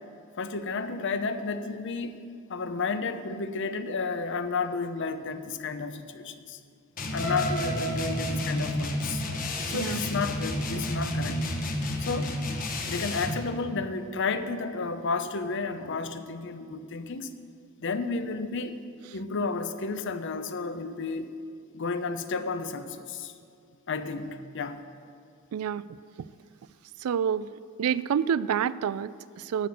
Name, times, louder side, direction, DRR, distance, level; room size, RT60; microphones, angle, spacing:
voice 1, 0.4-2.2 2.5-6.6 7.1-9.2 9.7-11.5 12.0-12.4 12.9-17.3 17.8-18.9 19.1-21.3 21.7-23.3 23.9-24.8, left 4 dB, 55° left, 11 dB, 0.7 m, -32 dB
sound 1, 7.0-13.4, left 1 dB, 40° left, 1.2 m, -31 dB
sound 2, 7.2-11.2 11.6-11.9 12.3-12.4, right 1 dB, 75° left, 2.7 m, -37 dB
voice 2, 25.5-25.8 27.0-27.5 27.8-29.7, right 8 dB, 80° right, 18 dB, 0.3 m, -28 dB
13.0 x 6.0 x 7.7 m, 2.4 s
head